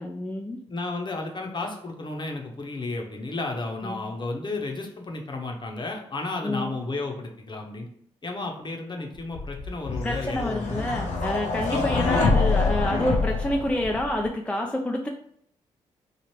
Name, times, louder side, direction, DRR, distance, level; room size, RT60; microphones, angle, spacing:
voice 1, 0.0-0.6 3.8-4.1 6.4-6.8 10.0-15.1, left 1 dB, 10° left, 1 dB, 0.4 m, -28 dB
voice 2, 0.7-7.9 8.2-10.9 11.7-12.4, left 2 dB, 35° left, 2 dB, 0.9 m, -33 dB
sound 1, 9.4-14.3, left 3 dB, 65° left, 0.8 m, -26 dB
3.2 x 2.4 x 4.4 m, 0.68 s
supercardioid pair, 50°, 13 cm